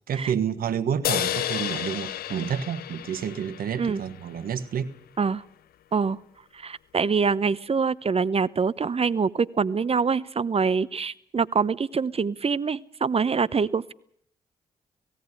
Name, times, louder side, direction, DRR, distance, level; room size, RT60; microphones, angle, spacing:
voice 1, 0.1-4.9, right 8 dB, 65° right, 1.3 m, -29 dB
sound 1, 1.0-4.5, left 12 dB, 70° left, 0.7 m, -31 dB
voice 2, 6.6-13.9, right 5 dB, 40° right, 0.9 m, -25 dB
17.5 x 16.5 x 9.7 m
hypercardioid pair, 40°, 16 cm